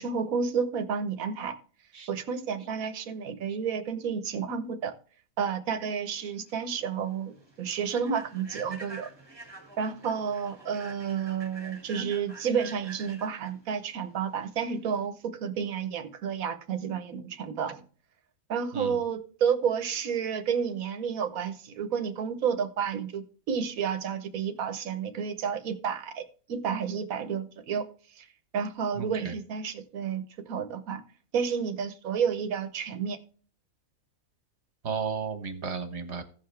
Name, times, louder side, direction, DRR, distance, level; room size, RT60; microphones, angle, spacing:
voice 1, 0.0-1.5 2.1-4.9 5.4-9.1 9.8-17.8 18.5-26.2 26.5-27.8 28.2-28.3 28.5-31.0 31.3-33.2, right 7 dB, 75° right, 1.4 m, -31 dB
Human voice / Train, 6.2-15.1, right 3 dB, 15° right, 2.0 m, -47 dB
voice 2, 29.0-29.3 34.8-36.2, right 6 dB, 50° right, 1.6 m, -33 dB
16.0 x 5.7 x 3.3 m
omnidirectional pair, 1.5 m